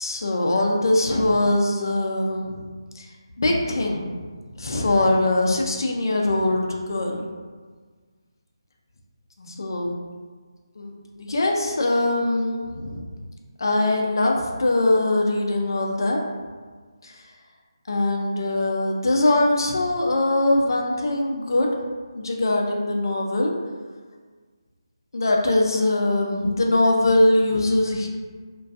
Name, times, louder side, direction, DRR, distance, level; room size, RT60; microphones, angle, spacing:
voice 1, 0.0-2.6 3.0-3.1 3.4-4.2 4.6-7.2 9.4-9.9 10.8-13.0 13.6-16.2 17.0-17.2 17.9-21.7 22.2-23.5 25.1-28.1, left 2 dB, 55° left, 0 dB, 0.3 m, -22 dB
2.4 x 2.2 x 2.4 m, 1.5 s
figure-of-eight pair, 175°, 3 cm